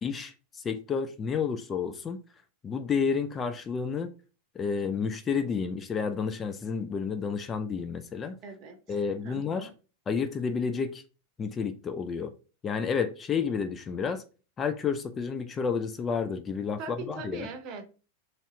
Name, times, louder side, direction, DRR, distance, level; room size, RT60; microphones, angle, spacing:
voice 1, 0.0-2.2 2.6-4.1 4.6-8.4 8.9-9.7 10.1-11.0 11.4-12.3 12.6-14.2 14.6-17.5, left 6 dB, 20° left, 0.3 m, -30 dB
voice 2, 8.4-9.7 16.8-17.8, right 4 dB, 40° right, 0.7 m, -41 dB
3.1 x 2.7 x 3.8 m
figure-of-eight pair, 90°, 0 cm